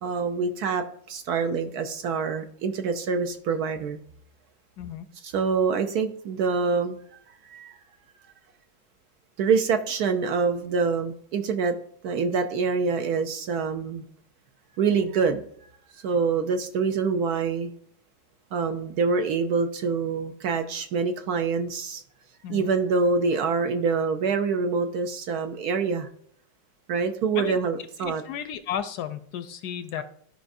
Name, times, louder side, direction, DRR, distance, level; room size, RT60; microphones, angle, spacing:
voice 1, 0.0-4.0 5.3-7.0 7.5-7.7 9.4-11.8 12.0-14.0 14.8-15.4 16.0-17.7 18.5-22.0 22.5-26.1 26.9-28.2, right 5 dB, 65° right, 7 dB, 1.1 m, -25 dB
voice 2, 4.8-5.1 22.4-22.7 27.3-27.6 28.0-30.0, left 9 dB, 75° left, 11 dB, 1.0 m, -33 dB
13.5 x 5.0 x 2.6 m, 0.62 s
omnidirectional pair, 2.0 m